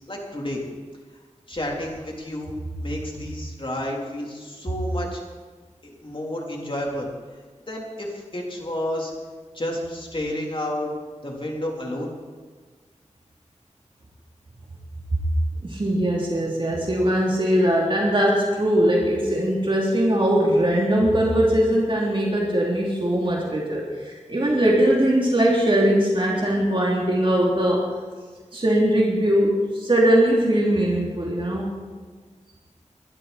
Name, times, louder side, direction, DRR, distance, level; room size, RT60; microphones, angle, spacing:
voice 1, 0.1-0.6 1.5-2.5 2.8-5.2 5.8-7.1 7.7-9.1 9.5-10.9 11.2-12.1, left 1 dB, 45° left, -1 dB, 3.6 m, -30 dB
voice 2, 15.6-27.9 28.5-31.6, right 1 dB, 45° right, -3 dB, 3.2 m, -21 dB
22.0 x 12.0 x 4.3 m, 1.4 s
wide cardioid pair, 55°, 13 cm